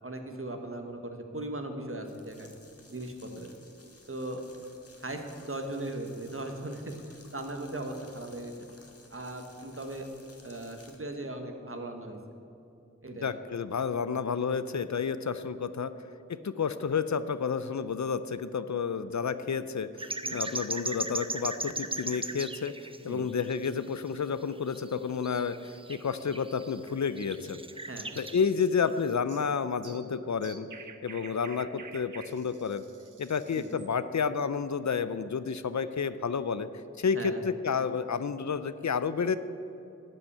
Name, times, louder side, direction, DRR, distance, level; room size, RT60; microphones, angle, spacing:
voice 1, 0.0-2.5 2.9-3.5 4.1-4.4 5.0-6.9 7.3-8.5 9.1-10.1 10.4-12.2 13.0-13.3 15.9-16.0 20.2-20.4 23.1-23.2 27.9-28.1 33.6-33.7 37.1-37.4, right 1 dB, 45° right, 4 dB, 1.3 m, -38 dB
sound 1, 2.0-11.0, left 2 dB, 50° left, 1.4 m, -57 dB
voice 2, 13.2-15.9 16.3-25.6 25.9-27.6 28.2-30.7 31.0-32.8 33.2-36.7 37.0-39.4, left 6 dB, 65° left, 13 dB, 0.5 m, -30 dB
sound 2, 20.0-23.0 23.3-24.1 24.4-28.5 28.9-29.0, right 2 dB, 20° right, 0.5 m, -37 dB
sound 3, 27.3-33.9, right 6 dB, 85° right, 0.7 m, -50 dB
12.0 x 5.4 x 8.5 m, 2.8 s
wide cardioid pair, 55°, 30 cm